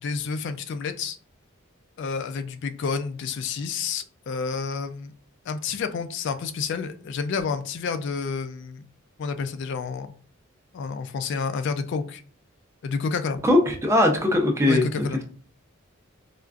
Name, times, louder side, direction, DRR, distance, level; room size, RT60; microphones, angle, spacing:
voice 1, 0.0-1.2 2.0-5.1 5.5-8.9 9.2-10.1 10.7-12.2 12.8-13.4 14.7-15.2, left 5 dB, 55° left, 9 dB, 0.3 m, -29 dB
voice 2, 13.4-15.2, left 1 dB, 15° right, 2 dB, 0.5 m, -20 dB
4.3 x 2.4 x 2.4 m, 0.43 s
head